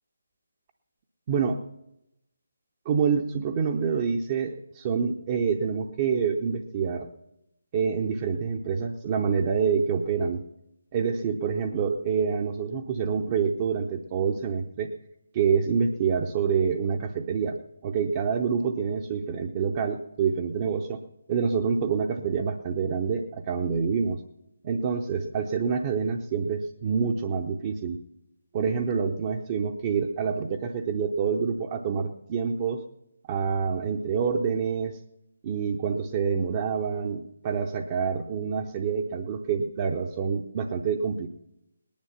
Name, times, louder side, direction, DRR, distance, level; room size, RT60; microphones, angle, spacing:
voice 1, 1.3-1.6 2.9-7.1 7.7-10.4 10.9-14.9 15.3-17.6 17.8-21.0 21.3-24.2 24.6-28.0 28.5-32.8 33.3-35.0 35.4-41.3, right 6 dB, 25° right, 3 dB, 0.7 m, -27 dB
19.0 x 10.5 x 5.7 m, 0.87 s
figure-of-eight pair, 145°, 0 cm